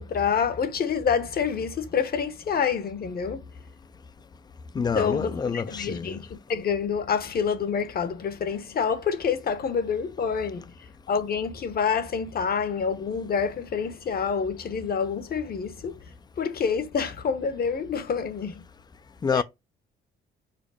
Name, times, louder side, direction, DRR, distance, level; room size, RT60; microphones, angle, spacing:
voice 1, 0.0-3.4 4.7-10.6 11.1-16.0 16.4-18.6 19.3-19.4, left 6 dB, 50° left, 1.0 m, -27 dB
voice 2, 4.7-6.2 19.2-19.4, left 6 dB, 20° left, 0.4 m, -27 dB
5.0 x 2.1 x 4.8 m
cardioid pair, 90°, 20 cm